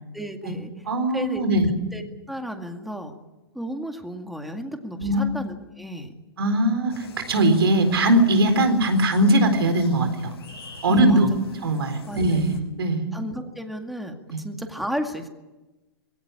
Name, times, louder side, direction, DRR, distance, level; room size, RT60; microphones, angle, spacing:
voice 1, 0.1-0.7 1.1-1.4 1.9-2.0 2.3-3.1 3.5-6.2 10.9-11.2 12.1-12.4 13.1-15.3, equal, ahead, 5 dB, 2.1 m, -33 dB
voice 2, 0.9-1.7 5.0-5.3 6.4-10.3 10.8-11.3 11.6-13.1 14.3-14.4, right 1 dB, 75° right, 7 dB, 4.2 m, -20 dB
sound 1, 6.9-12.6, left 4 dB, 75° left, 8.0 m, -45 dB
21.5 x 17.5 x 9.9 m, 1.1 s
hypercardioid pair, 120°, 13 cm